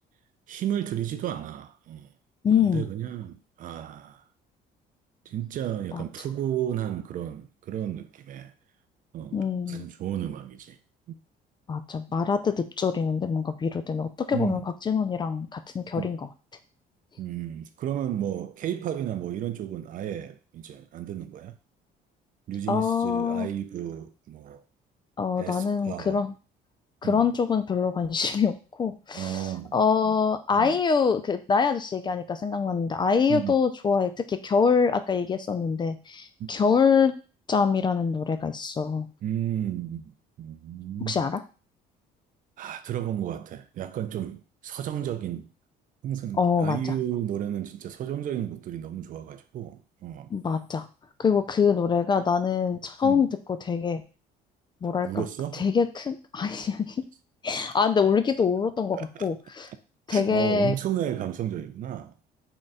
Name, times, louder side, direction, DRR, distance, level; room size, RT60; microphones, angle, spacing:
voice 1, 0.5-2.1 2.6-4.2 5.3-8.5 9.1-10.8 11.1-11.2 14.3-14.7 16.0-16.1 17.2-21.6 22.5-24.6 25.4-26.2 27.0-27.3 29.1-29.8 30.0-30.2 30.5-30.8 33.3-33.6 36.4-36.5 39.2-40.1 40.4-41.2 42.6-45.5 46.0-50.3 53.0-53.2 55.1-55.7 58.9-59.3 60.1-62.1, right 10 dB, 50° right, 0.4 m, -33 dB
voice 2, 2.4-2.8 5.9-6.0 9.3-9.9 11.7-16.3 22.7-23.5 25.2-26.3 27.0-37.1 37.5-39.1 41.1-41.4 46.4-46.8 50.3-50.9 51.2-53.3 53.6-54.0 54.8-55.3 55.5-57.0 57.4-59.7 60.1-60.7, left 6 dB, 25° left, 0.4 m, -25 dB
3.8 x 2.3 x 4.0 m
cardioid pair, 110°, 17 cm